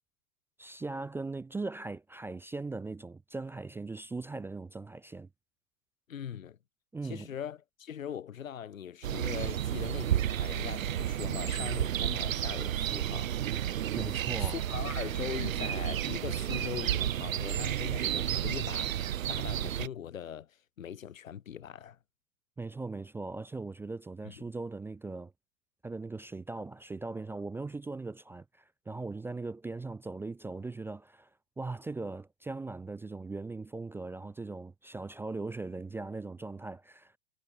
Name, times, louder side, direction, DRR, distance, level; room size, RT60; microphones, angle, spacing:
voice 1, 0.6-5.3 6.9-7.3 13.9-14.6 22.6-25.3 25.8-31.3 31.6-37.1, right 3 dB, 5° right, 0.4 m, -39 dB
voice 2, 6.1-6.6 7.0-13.4 14.4-22.0 24.2-24.4, left 9 dB, 85° left, 1.2 m, -41 dB
sound 1, 9.0-19.9, right 11 dB, 85° right, 0.8 m, -32 dB
hypercardioid pair, 105°, 39 cm